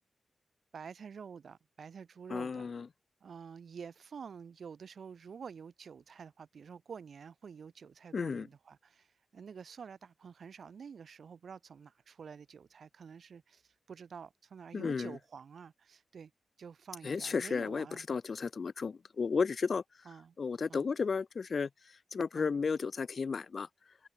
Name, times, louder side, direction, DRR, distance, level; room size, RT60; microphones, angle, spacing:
voice 1, 0.7-2.7 3.2-16.3 16.6-18.0 20.0-20.4 20.7-20.9 22.3-22.5, right 6 dB, 60° right, 7.4 m, -49 dB
voice 2, 2.3-2.9 8.1-8.5 14.7-15.2 17.0-19.8 20.4-21.7 22.1-23.7, left 5 dB, 45° left, 3.2 m, -33 dB
wide cardioid pair, 150°, 0 cm